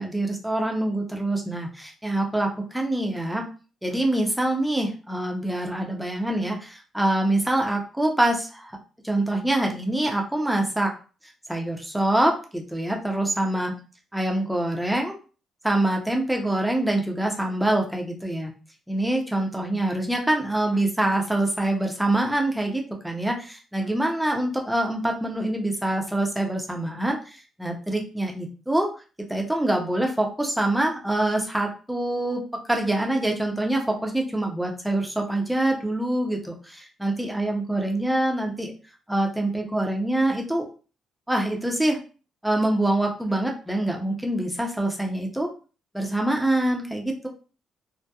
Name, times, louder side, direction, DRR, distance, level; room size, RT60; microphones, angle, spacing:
voice 1, 0.0-3.5 3.8-8.7 9.0-10.9 11.5-13.8 14.1-15.2 15.6-18.5 18.9-28.9 29.3-38.7 39.1-40.7 41.3-42.0 42.4-45.5 45.9-47.3, right 1 dB, 5° right, 1 dB, 0.6 m, -25 dB
2.7 x 2.1 x 2.3 m, 0.35 s
cardioid pair, 90°, 0 cm